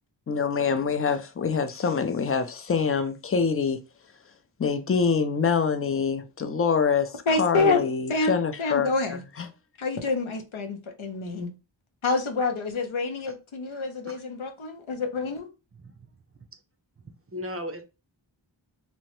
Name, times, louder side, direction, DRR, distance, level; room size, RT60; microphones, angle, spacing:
voice 1, 0.3-3.8 4.6-8.9 9.4-9.5, left 6 dB, 30° left, 0.4 m, -25 dB
voice 2, 7.3-9.2 9.8-11.5 12.0-15.5, left 3 dB, 85° left, 0.7 m, -27 dB
voice 3, 15.8-16.1 16.3-16.4 17.3-17.8, left 1 dB, 30° right, 0.5 m, -37 dB
2.9 x 2.1 x 2.9 m
wide cardioid pair, 50°, 47 cm